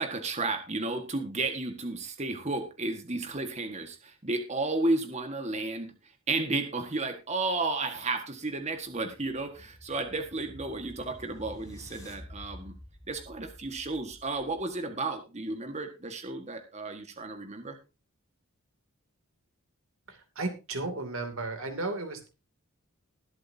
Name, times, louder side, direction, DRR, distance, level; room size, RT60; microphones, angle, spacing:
voice 1, 0.0-5.9 6.3-12.7 13.1-17.8, right 2 dB, 30° right, 6 dB, 1.6 m, -33 dB
sound 1, 8.7-14.8, equal, 15° left, 3.3 m, -50 dB
voice 2, 20.1-22.3, right 2 dB, 65° right, 5 dB, 2.7 m, -34 dB
20.5 x 7.8 x 2.8 m, 0.30 s
head